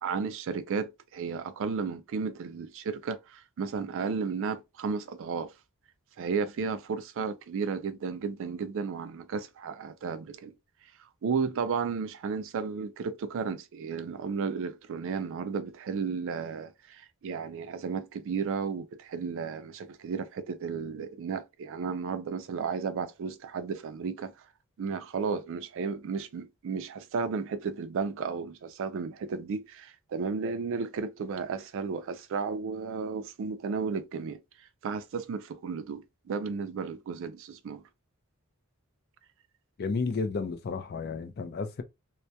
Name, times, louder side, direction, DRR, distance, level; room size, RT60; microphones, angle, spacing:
voice 1, 0.0-5.5 6.2-10.5 11.2-24.3 24.8-34.4 34.8-37.8, right 5 dB, 60° right, 0.3 m, -33 dB
voice 2, 39.8-41.8, left 4 dB, 45° left, 0.4 m, -32 dB
2.2 x 2.1 x 2.7 m
head